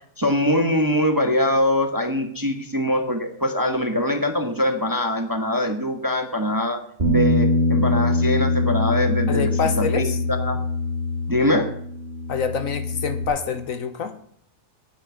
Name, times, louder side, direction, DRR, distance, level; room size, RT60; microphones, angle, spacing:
voice 1, 0.2-6.8 7.1-9.5 9.8-10.0 10.4-10.6 11.3-11.7, left 1 dB, 15° right, 6 dB, 1.1 m, -23 dB
Bass guitar, 7.0-13.2, left 2 dB, 30° right, 2.0 m, -23 dB
voice 2, 9.3-10.2 12.3-14.2, left 6 dB, 60° left, 10 dB, 1.3 m, -26 dB
9.9 x 7.9 x 9.5 m, 0.64 s
omnidirectional pair, 1.6 m